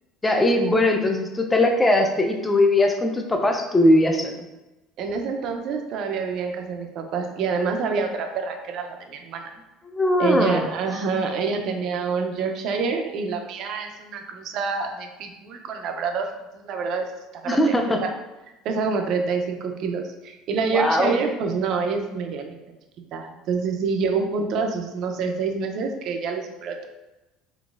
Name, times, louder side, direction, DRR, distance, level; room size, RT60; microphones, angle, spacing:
voice 1, 0.2-4.3 9.9-10.7 17.5-18.0 20.7-21.2, left 1 dB, 10° left, 3 dB, 0.4 m, -20 dB
voice 2, 5.0-9.5 10.2-17.1 17.4-17.7 18.0-18.1 18.6-22.6 23.1-26.9, right 5 dB, 55° right, 4 dB, 0.4 m, -27 dB
3.8 x 2.9 x 2.4 m, 1.0 s
cardioid pair, 135°, 0 cm